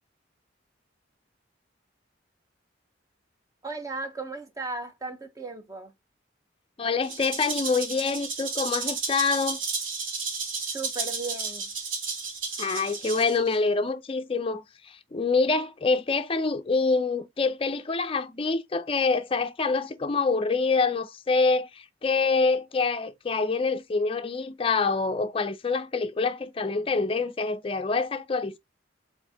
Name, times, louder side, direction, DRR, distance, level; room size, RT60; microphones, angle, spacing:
voice 1, 3.6-5.9 10.7-11.7, right 3 dB, 20° right, 0.7 m, -36 dB
voice 2, 6.8-9.6 12.6-28.6, left 4 dB, 30° left, 0.4 m, -26 dB
Rattle (instrument), 7.0-13.6, right 4 dB, 80° right, 1.2 m, -33 dB
4.5 x 2.6 x 3.4 m
head